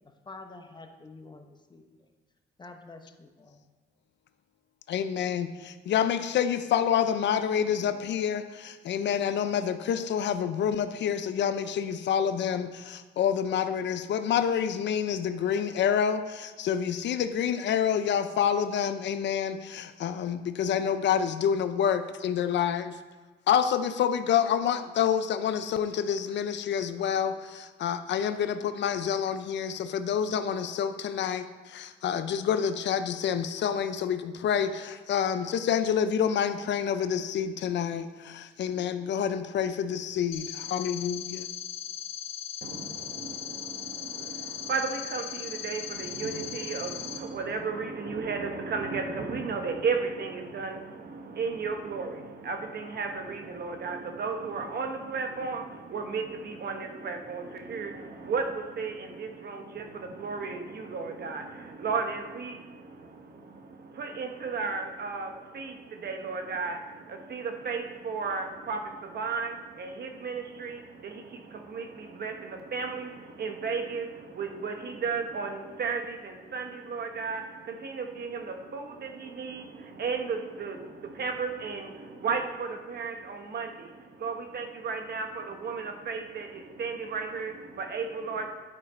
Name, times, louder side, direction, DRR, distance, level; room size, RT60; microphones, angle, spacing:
voice 1, 0.3-1.8 2.6-3.7, left 3 dB, 20° left, 5 dB, 0.9 m, -47 dB
voice 2, 4.9-23.0 23.5-41.5, left 8 dB, 65° left, 11 dB, 0.5 m, -28 dB
sound 1, 40.3-47.2, left 11 dB, 80° left, 1.4 m, -38 dB
voice 3, 42.6-88.5, right 4 dB, 55° right, 4 dB, 1.1 m, -34 dB
11.0 x 4.9 x 4.4 m, 1.3 s
cardioid pair, 90°, 20 cm